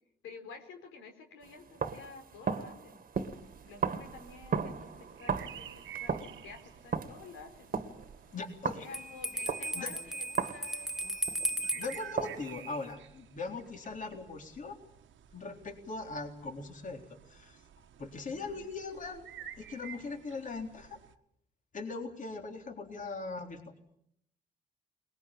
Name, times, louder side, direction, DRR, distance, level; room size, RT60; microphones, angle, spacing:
voice 1, 0.2-3.0 3.6-7.7 8.8-11.2 11.6-11.9 18.3-18.7, left 4 dB, 90° left, 4 dB, 4.4 m, -51 dB
sound 1, 1.4-11.7 12.2-12.9, right 6 dB, 45° right, 1.8 m, -37 dB
sound 2, 3.1-21.1, right 9 dB, 75° right, 1.5 m, -52 dB
voice 2, 8.3-8.9 9.5-9.9 11.7-14.8 15.3-17.6 18.0-19.3 19.6-21.0 21.7-23.7, left 3 dB, 40° left, 4 dB, 3.8 m, -40 dB
Bell, 8.9-12.0, right 1 dB, ahead, 1.4 m, -36 dB
22.0 x 21.0 x 8.9 m, 0.74 s
cardioid pair, 90°, 20 cm